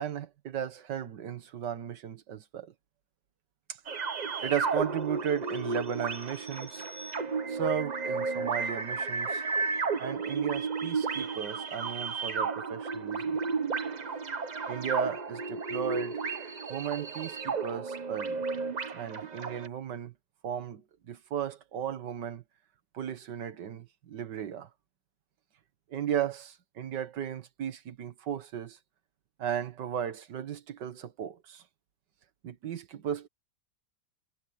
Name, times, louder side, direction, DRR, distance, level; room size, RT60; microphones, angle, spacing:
voice 1, 0.0-2.7 4.4-6.9 7.5-9.5 10.0-13.4 14.7-16.2 16.7-18.4 18.9-20.1 20.4-22.4 22.9-24.7 25.9-28.8 29.4-31.6 32.4-33.3, right 8 dB, 85° right, 2.0 m, -35 dB
sound 1, 3.9-19.7, right 4 dB, 35° right, 0.8 m, -33 dB
omnidirectional pair, 1.8 m